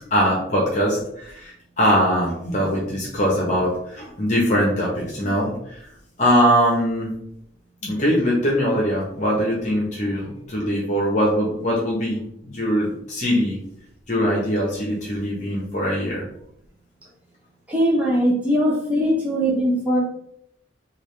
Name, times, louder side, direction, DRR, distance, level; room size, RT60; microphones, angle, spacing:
voice 1, 0.1-5.8 6.2-7.1 7.8-13.6 14.1-16.2, equal, 40° left, -3 dB, 0.8 m, -22 dB
voice 2, 17.7-20.0, equal, 10° right, -6 dB, 0.7 m, -20 dB
3.4 x 2.4 x 3.1 m, 0.73 s
head